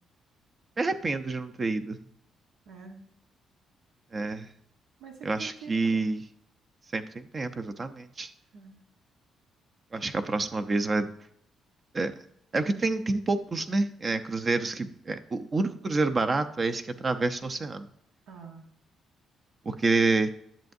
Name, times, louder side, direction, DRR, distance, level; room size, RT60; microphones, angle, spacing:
voice 1, 0.8-2.0 4.1-4.5 5.2-6.2 6.9-8.3 9.9-11.1 11.9-12.1 12.5-17.9 19.7-20.3, right 3 dB, 35° right, 9 dB, 0.6 m, -28 dB
voice 2, 2.7-3.0 5.0-6.1 8.5-8.8 18.3-18.7, right 5 dB, 85° right, 2 dB, 1.1 m, -46 dB
10.5 x 7.0 x 2.6 m, 0.69 s
cardioid pair, 90°, 0 cm